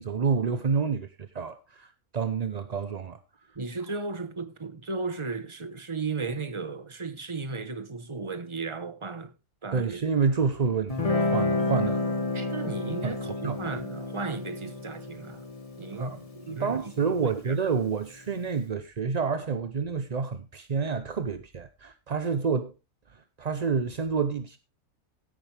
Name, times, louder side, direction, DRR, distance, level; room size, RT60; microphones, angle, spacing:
voice 1, 0.0-3.2 9.7-12.2 13.0-13.1 13.4-13.6 16.0-16.2 16.5-22.7 23.4-24.6, right 5 dB, 45° right, 0.5 m, -28 dB
voice 2, 3.5-9.3 9.6-10.0 12.3-15.4 15.8-16.8 17.2-17.5, right 4 dB, 25° right, 1.0 m, -35 dB
Guitar, 10.9-18.0, left 2 dB, 25° left, 1.4 m, -31 dB
16.0 x 8.7 x 3.3 m
omnidirectional pair, 1.6 m